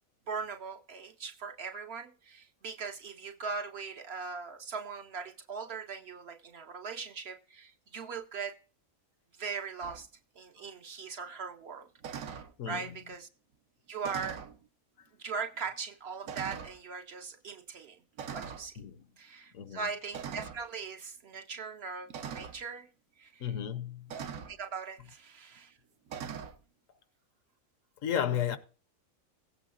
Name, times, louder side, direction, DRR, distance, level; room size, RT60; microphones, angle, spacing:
voice 1, 0.3-8.5 9.4-10.1 10.4-11.9 12.2-12.4 12.7-13.3 13.9-14.4 15.2-18.0 18.3-18.8 19.2-22.9 23.2-23.5 24.1-25.8, right 5 dB, 60° right, 0.8 m, -40 dB
sound 1, 9.8-10.0 12.0-12.5 14.0-14.6 15.4-15.5 16.3-16.8 18.2-18.7 20.1-20.6 22.1-22.6 24.1-24.6 26.1-26.6, right 7 dB, 75° right, 1.2 m, -41 dB
voice 2, 12.6-13.0 18.8-19.0 19.5-19.9 23.4-24.2 28.0-28.6, left 9 dB, 75° left, 1.1 m, -33 dB
16.5 x 8.3 x 2.4 m
omnidirectional pair, 1.4 m